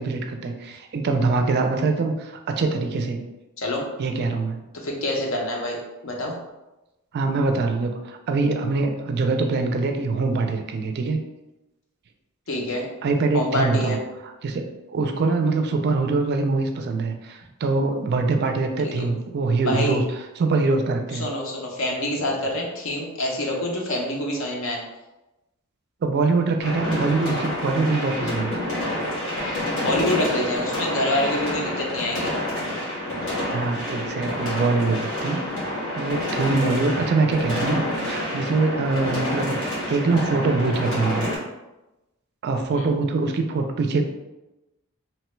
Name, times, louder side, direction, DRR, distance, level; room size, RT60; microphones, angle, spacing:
voice 1, 0.0-3.2 4.0-4.6 7.1-11.2 13.0-14.0 14.4-14.6 14.9-20.0 20.4-21.2 26.0-28.6 33.5-35.4 35.9-41.3 42.4-44.0, right 3 dB, 50° right, 5 dB, 0.3 m, -23 dB
voice 2, 4.7-6.4 12.5-12.9 13.3-14.0 18.8-19.1 19.6-20.0 21.1-24.8 29.4-29.5 29.8-32.3 42.7-42.9, left 1 dB, 65° left, 0 dB, 0.6 m, -26 dB
sound 1, 26.6-41.4, left 1 dB, 85° left, 1.5 m, -28 dB
3.0 x 2.2 x 3.0 m, 1.0 s
head